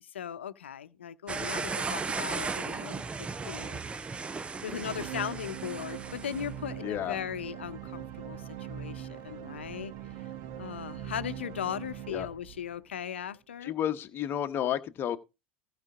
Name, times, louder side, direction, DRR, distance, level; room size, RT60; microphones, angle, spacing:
voice 1, 0.1-4.1 4.6-8.4 8.7-9.9 10.6-13.7, left 9 dB, 90° left, 0.8 m, -38 dB
sound 1, 1.3-6.5, right 4 dB, 20° right, 0.6 m, -36 dB
sound 2, 4.7-13.1, right 10 dB, 55° right, 1.2 m, -42 dB
voice 2, 6.8-7.2 12.1-12.3 13.6-15.2, left 10 dB, 40° left, 1.2 m, -31 dB
14.5 x 5.1 x 4.9 m
hypercardioid pair, 100°, 6 cm